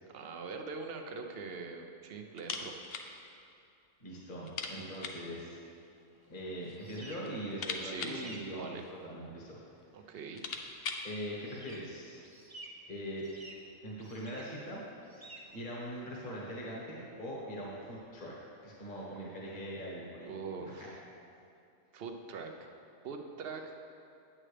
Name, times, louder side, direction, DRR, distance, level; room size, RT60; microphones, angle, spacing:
voice 1, 0.1-2.7 7.8-8.8 9.9-10.4 20.2-21.0 21.9-22.6 23.0-23.8, right 4 dB, 55° right, 4 dB, 0.8 m, -43 dB
sound 1, 2.4-3.1 3.4-3.5 3.8-3.9 4.4-5.3 6.2-6.8 7.2-9.1 9.8-9.9 10.2-11.1, left 5 dB, 60° left, 0.8 m, -41 dB
voice 2, 4.0-5.6 6.3-9.6 11.0-12.2 12.9-13.3 13.8-18.4 18.6-20.3 20.6-20.9, equal, 40° left, -4 dB, 1.4 m, -42 dB
sound 2, 6.1-19.3, right 2 dB, 25° right, 0.6 m, -55 dB
8.8 x 8.7 x 3.3 m, 2.6 s
omnidirectional pair, 1.3 m